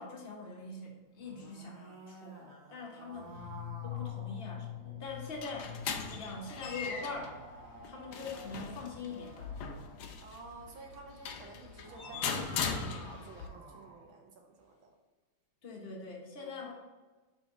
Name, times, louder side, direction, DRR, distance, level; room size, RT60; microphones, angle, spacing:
voice 1, 0.0-3.4 3.8-5.8 6.1-7.4 7.9-9.5 15.6-16.7, left 3 dB, 40° left, -1 dB, 1.0 m, -43 dB
sound 1, 1.1-5.0 6.0-10.2 11.6-14.1, right 2 dB, 45° right, 1.6 m, -52 dB
sound 2, 3.1-7.2, left 11 dB, 85° left, 0.6 m, -44 dB
sound 3, 5.1-13.5, left 6 dB, 70° left, 1.1 m, -40 dB
voice 2, 10.2-14.9 16.4-16.7, right 3 dB, 75° right, 2 dB, 1.6 m, -52 dB
6.1 x 3.9 x 4.9 m, 1.2 s
omnidirectional pair, 2.3 m